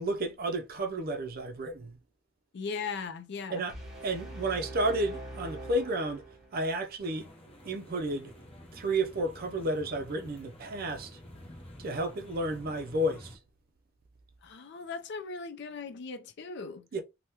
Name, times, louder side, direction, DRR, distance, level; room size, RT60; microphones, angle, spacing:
voice 1, 0.0-2.0 3.5-3.7 4.0-6.2 6.5-7.3 7.6-8.3 8.7-11.1 11.8-13.4 16.9-17.0, right 1 dB, 45° right, 0.4 m, -31 dB
voice 2, 2.5-3.7 14.4-16.9, left 5 dB, 55° left, 0.4 m, -38 dB
sound 1, 3.7-6.7, right 2 dB, 5° right, 1.1 m, -43 dB
sound 2, 7.0-13.4, left 1 dB, 30° left, 0.8 m, -50 dB
3.4 x 2.2 x 2.8 m
head